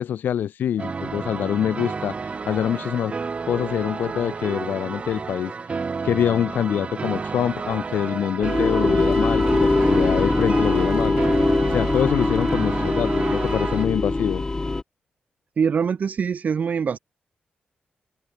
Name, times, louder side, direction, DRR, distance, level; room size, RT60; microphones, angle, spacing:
voice 1, 0.0-3.1 3.4-11.2 11.7-14.4, left 9 dB, 90° left, 0.7 m, -25 dB
sound 1, 0.8-13.9, right 4 dB, 40° right, 1.7 m, -30 dB
sound 2, 8.4-14.8, left 2 dB, 20° left, 2.5 m, -22 dB
voice 2, 15.6-17.0, right 6 dB, 55° right, 2.5 m, -23 dB
wide cardioid pair, 110°, 3 cm